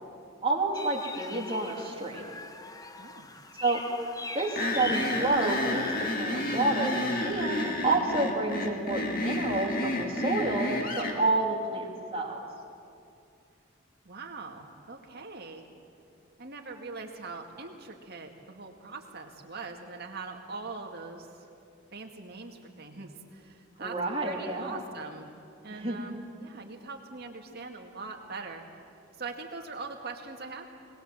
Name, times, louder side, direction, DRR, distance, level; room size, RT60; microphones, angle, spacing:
voice 1, 0.4-2.2 3.6-3.8 4.3-12.4 23.8-24.8 25.7-26.0, right 2 dB, 30° right, -1 dB, 2.7 m, -29 dB
sound 1, 0.7-6.1, left 2 dB, 20° left, 0.9 m, -42 dB
voice 2, 3.0-3.3 14.0-15.7 16.4-21.3 21.9-24.0 24.2-25.3 25.6-28.6 29.2-30.6, right 4 dB, 55° right, 2 dB, 2.2 m, -42 dB
sound 2, 4.6-11.2, left 1 dB, 45° left, 2.2 m, -31 dB
21.0 x 19.5 x 7.6 m, 2.5 s
head